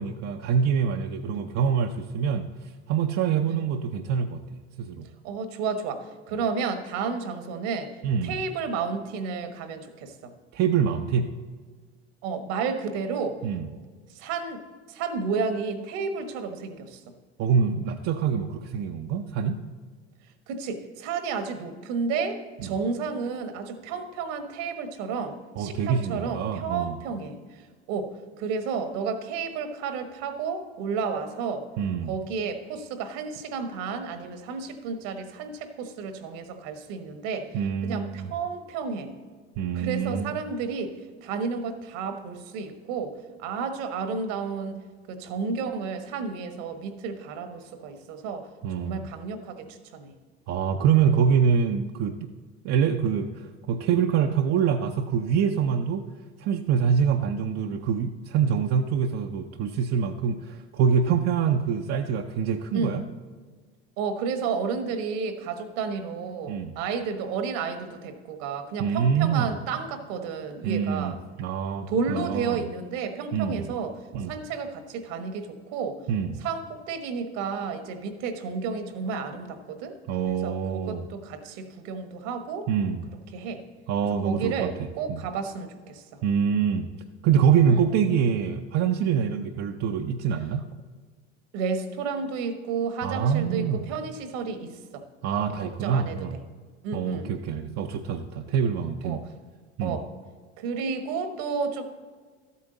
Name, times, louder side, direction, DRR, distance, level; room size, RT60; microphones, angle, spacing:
voice 1, 0.0-2.5 2.9-5.1 8.0-8.4 10.5-11.3 13.4-13.7 17.4-19.6 22.6-22.7 25.6-27.0 31.8-32.2 37.5-38.3 39.6-40.3 48.6-49.1 50.5-52.3 52.6-56.0 56.4-63.0 66.5-66.8 68.8-69.5 70.6-72.6 73.3-73.7 74.1-74.3 76.1-76.4 80.1-81.1 82.7-83.1 83.9-85.3 86.2-86.9 87.2-90.7 93.0-93.8 95.2-96.4 96.9-99.2 99.8-100.0, right 7 dB, 50° right, 4 dB, 0.7 m, -25 dB
voice 2, 5.2-7.9 8.2-10.3 12.2-13.4 14.1-14.6 14.9-17.0 20.5-31.7 32.1-39.1 39.7-44.8 45.1-48.5 48.8-50.1 62.7-63.0 64.0-71.2 71.9-76.0 76.4-79.9 80.3-82.7 83.3-83.6 84.2-86.2 87.7-87.8 91.5-95.0 95.8-96.3 96.8-97.3 99.0-99.2 99.8-100.1 100.6-101.8, right 5 dB, 65° right, 8 dB, 1.3 m, -32 dB
13.0 x 8.3 x 3.9 m, 1.5 s
hypercardioid pair, 75°, 34 cm